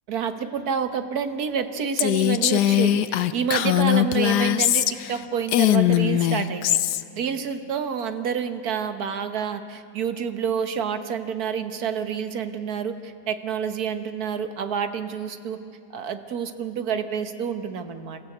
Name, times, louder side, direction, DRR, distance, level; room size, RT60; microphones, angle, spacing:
voice 1, 0.1-6.8 7.1-15.6 15.9-18.2, right 7 dB, 70° right, 9 dB, 1.6 m, -28 dB
Female speech woman speaking, 2.0-5.2 5.5-7.0, left 12 dB, 90° left, 1.3 m, -21 dB
28.0 x 15.0 x 7.9 m, 2.7 s
omnidirectional pair, 1.7 m